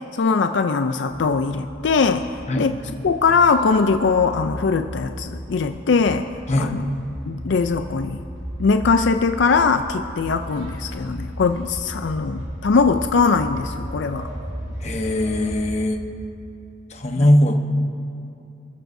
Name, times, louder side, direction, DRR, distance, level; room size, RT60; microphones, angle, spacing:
voice 1, 0.1-2.3 2.6-2.8 3.0-6.3 6.6-6.8 7.3-8.2 8.6-14.3 17.2-17.3, left 4 dB, 75° left, 7 dB, 0.5 m, -20 dB
sound 1, 1.1-15.8, equal, 80° right, 4.4 m, -35 dB
voice 2, 14.8-16.0 16.9-17.6, left 1 dB, 35° left, 4 dB, 1.0 m, -20 dB
28.0 x 14.0 x 2.7 m, 2.6 s
head